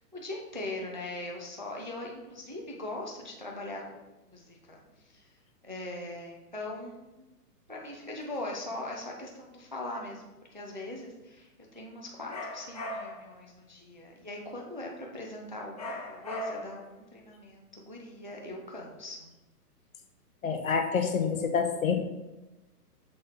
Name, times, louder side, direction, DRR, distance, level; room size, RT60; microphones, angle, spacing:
voice 1, 0.1-4.0 4.3-5.3 5.6-7.2 7.7-19.3, left 2 dB, 35° right, -1 dB, 0.4 m, -41 dB
sound 1, 12.3-13.3 15.8-16.9, left 1 dB, 25° left, 0.7 m, -38 dB
voice 2, 20.4-21.9, left 6 dB, 55° left, 5 dB, 1.0 m, -27 dB
6.3 x 4.3 x 3.7 m, 1.0 s
hypercardioid pair, 175°, 48 cm